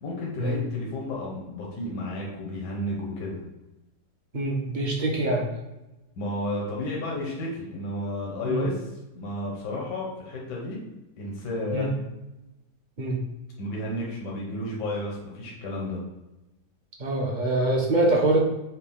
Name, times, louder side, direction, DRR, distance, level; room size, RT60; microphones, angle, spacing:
voice 1, 0.0-3.4 6.2-8.9 9.1-10.9 11.2-11.9 13.6-16.0, left 1 dB, 80° left, -3 dB, 1.5 m, -32 dB
voice 2, 4.3-5.4 8.4-8.6 11.7-11.9 13.0-13.2 17.0-18.4, right 2 dB, 40° right, -1 dB, 0.7 m, -24 dB
5.9 x 2.3 x 3.5 m, 0.99 s
omnidirectional pair, 1.8 m